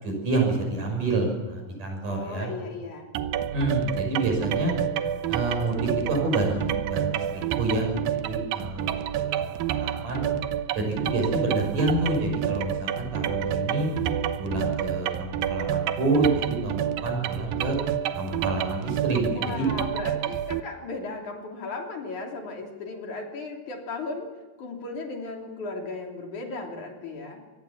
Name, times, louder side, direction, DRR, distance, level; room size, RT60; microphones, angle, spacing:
voice 1, 0.0-2.5 3.5-4.8 5.3-7.9 8.2-8.9 9.1-10.3 10.7-13.9 14.4-17.8 18.2-19.7, right 2 dB, 65° right, 2 dB, 7.9 m, -28 dB
voice 2, 2.1-3.1 19.4-24.3 24.6-27.4, left 3 dB, 60° left, 1 dB, 4.5 m, -36 dB
sound 1, 3.1-20.6, right 10 dB, 85° right, 2.7 m, -29 dB
25.5 x 20.5 x 7.3 m, 1.3 s
omnidirectional pair, 3.9 m